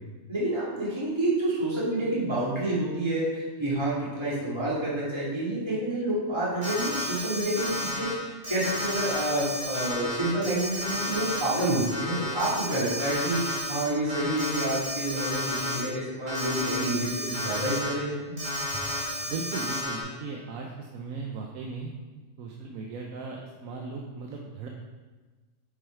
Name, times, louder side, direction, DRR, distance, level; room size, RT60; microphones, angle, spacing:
voice 1, 0.3-18.3, right 1 dB, 20° right, -8 dB, 2.2 m, -28 dB
Alarm, 6.6-8.1 8.4-13.8 14.1-15.8 16.3-17.9 18.4-20.0, left 1 dB, 40° right, 2.4 m, -32 dB
voice 2, 19.3-21.9 22.4-24.7, right 4 dB, 90° right, 0 dB, 1.2 m, -37 dB
7.1 x 5.2 x 4.4 m, 1.3 s
omnidirectional pair, 1.4 m